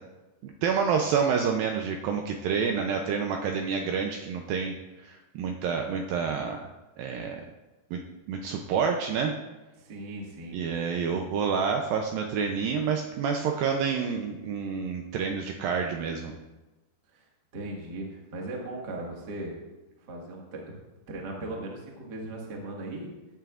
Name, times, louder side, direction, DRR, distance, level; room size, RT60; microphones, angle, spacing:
voice 1, 0.4-4.7 5.0-6.7 7.0-7.4 7.9-8.0 8.3-9.3 10.5-16.3, right 6 dB, 80° right, 2 dB, 2.1 m, -28 dB
voice 2, 9.8-10.6 17.1-17.3 17.5-19.5 20.0-20.6 21.1-23.1, right 2 dB, 50° right, -1 dB, 1.2 m, -38 dB
14.5 x 9.0 x 2.5 m, 1.1 s
omnidirectional pair, 4.7 m